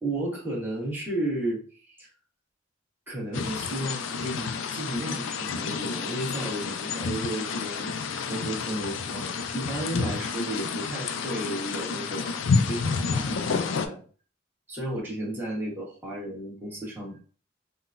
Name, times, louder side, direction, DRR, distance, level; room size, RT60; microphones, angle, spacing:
voice 1, 0.0-2.1 3.1-8.0 8.3-12.3 12.6-14.0 14.7-17.2, right 1 dB, 10° right, -5 dB, 1.2 m, -33 dB
sound 1, 3.3-13.9, left 5 dB, 75° left, 0.3 m, -30 dB
3.8 x 2.2 x 2.5 m, 0.39 s
head